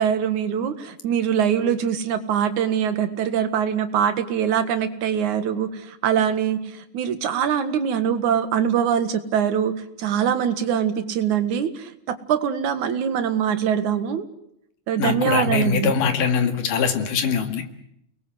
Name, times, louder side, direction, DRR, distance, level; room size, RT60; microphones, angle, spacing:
voice 1, 0.0-14.2 14.9-16.0, right 8 dB, 70° right, 9 dB, 3.0 m, -23 dB
voice 2, 15.0-17.6, left 6 dB, 90° left, 6 dB, 3.7 m, -22 dB
30.0 x 21.5 x 8.0 m, 0.75 s
omnidirectional pair, 3.6 m